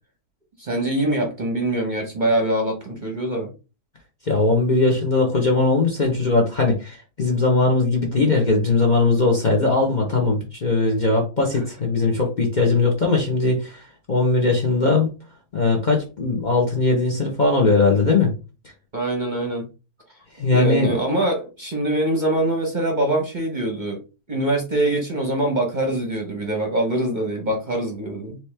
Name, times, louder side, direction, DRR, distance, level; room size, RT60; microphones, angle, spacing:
voice 1, 0.6-3.5 18.9-19.7 20.5-24.0 24.3-28.4, right 1 dB, 40° right, 2 dB, 0.8 m, -23 dB
voice 2, 4.2-15.1 15.5-18.3 20.4-20.9, left 3 dB, 35° left, 1 dB, 0.8 m, -20 dB
4.4 x 3.1 x 3.3 m, 0.31 s
omnidirectional pair, 1.6 m